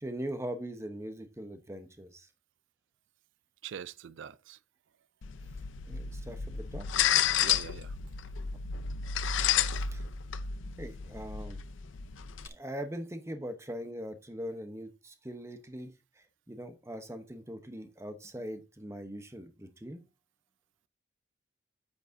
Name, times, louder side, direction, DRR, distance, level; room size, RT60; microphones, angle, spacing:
voice 1, 0.0-2.3 5.9-6.9 9.6-10.0 10.8-11.6 12.4-20.0, equal, 15° right, 0.9 m, -41 dB
voice 2, 3.6-4.6 7.4-7.9, right 8 dB, 80° right, 0.4 m, -43 dB
sound 1, 5.2-12.5, left 9 dB, 90° left, 0.6 m, -31 dB
8.7 x 8.1 x 2.7 m
head